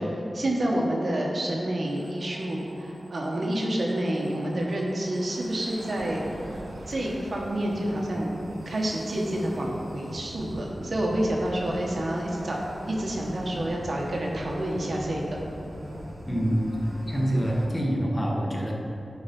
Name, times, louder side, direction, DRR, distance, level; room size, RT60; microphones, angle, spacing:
voice 1, 0.0-6.2 6.9-8.4 8.6-15.4, right 1 dB, 60° right, -2 dB, 1.5 m, -28 dB
sound 1, 1.8-17.7, right 1 dB, 85° right, 1.4 m, -41 dB
voice 2, 16.3-16.8 17.1-18.7, equal, 20° left, -2 dB, 1.6 m, -26 dB
11.0 x 4.8 x 5.4 m, 2.8 s
wide cardioid pair, 65°, 0 cm